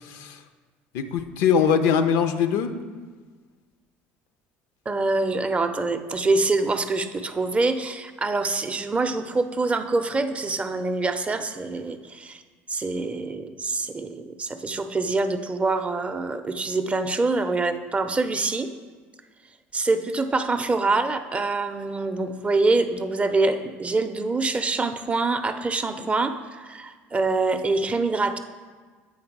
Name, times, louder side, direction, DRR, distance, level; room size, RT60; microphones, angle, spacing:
voice 1, 0.0-0.4 0.9-2.7, left 7 dB, 75° left, 9 dB, 0.5 m, -22 dB
voice 2, 4.9-12.4 12.7-18.7 19.7-28.4, right 3 dB, 20° right, 8 dB, 0.5 m, -25 dB
8.6 x 3.5 x 4.6 m, 1.5 s
supercardioid pair, 80°, 6 cm